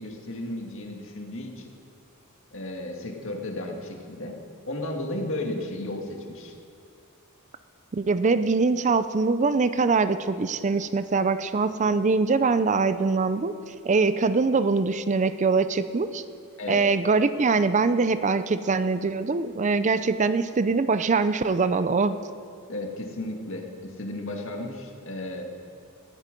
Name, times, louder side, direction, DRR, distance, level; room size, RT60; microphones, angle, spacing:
voice 1, 0.0-1.7 2.5-4.4 4.6-6.6 16.6-16.9 22.7-25.4, left 1 dB, 60° left, 2 dB, 2.0 m, -34 dB
voice 2, 7.9-16.2 16.7-22.2, right 4 dB, 35° right, 12 dB, 0.4 m, -23 dB
19.0 x 12.5 x 5.3 m, 2.6 s
head